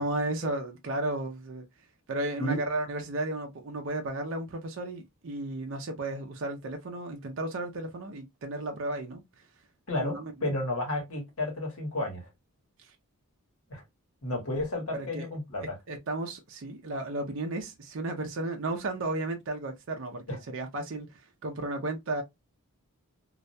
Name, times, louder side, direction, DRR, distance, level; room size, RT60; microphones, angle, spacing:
voice 1, 0.0-1.6 2.1-9.2 10.0-10.3 14.9-15.3 15.9-22.2, right 2 dB, 55° right, 0.5 m, -34 dB
voice 2, 9.9-12.3 13.7-13.8 14.2-15.8 20.3-20.4, left 1 dB, 70° left, 1.1 m, -32 dB
2.3 x 2.1 x 2.6 m
head